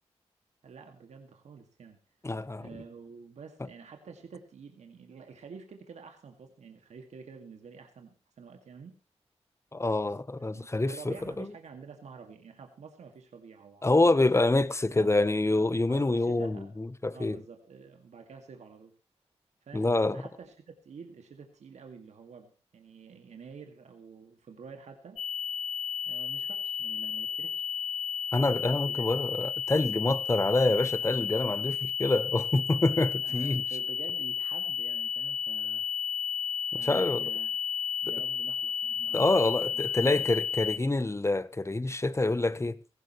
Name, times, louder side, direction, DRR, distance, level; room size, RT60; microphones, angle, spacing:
voice 1, 0.6-2.0 2.6-8.9 10.5-14.5 15.0-15.1 15.9-16.8 17.1-18.9 19.6-20.5 20.8-25.2 26.0-27.7 28.7-29.1 33.2-35.9 36.7-37.5 38.0-39.8 40.1-40.2, right 5 dB, 80° right, 2.0 m, -48 dB
voice 2, 2.2-2.7 9.7-11.5 13.8-17.4 19.7-20.2 28.3-33.6 36.8-37.2 39.1-42.8, left 2 dB, 25° left, 1.0 m, -26 dB
sound 1, 25.2-40.8, left 8 dB, 80° left, 1.3 m, -33 dB
17.0 x 15.5 x 3.1 m
cardioid pair, 45°, 12 cm